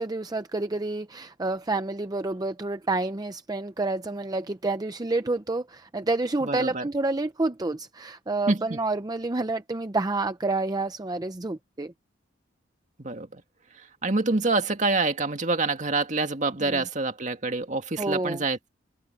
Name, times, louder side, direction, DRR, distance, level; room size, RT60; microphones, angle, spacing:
voice 1, 0.0-11.9 16.7-16.8 18.0-18.4, right 2 dB, 20° right, 0.6 m, -29 dB
voice 2, 6.4-6.9 8.5-8.8 13.0-13.4 14.0-18.7, right 3 dB, 40° right, 2.0 m, -26 dB
open air
head